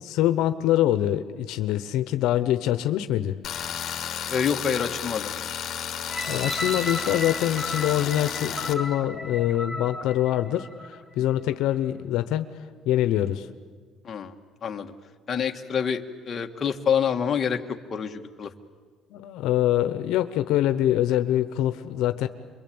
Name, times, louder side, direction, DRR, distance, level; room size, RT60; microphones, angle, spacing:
voice 1, 0.0-3.4 6.3-12.5 12.8-13.5 19.1-22.3, left 12 dB, 80° left, 9 dB, 1.0 m, -24 dB
Tools, 3.4-8.7, left 9 dB, 50° left, 2.5 m, -33 dB
voice 2, 4.3-5.3 14.0-14.3 14.6-14.9 15.3-17.6 17.9-18.5, left 7 dB, 35° left, 4 dB, 1.8 m, -27 dB
sound 1, 6.1-11.0 11.6-11.7, left 1 dB, ahead, 1.8 m, -34 dB
27.5 x 23.0 x 8.8 m, 1.5 s
cardioid pair, 125°, 0 cm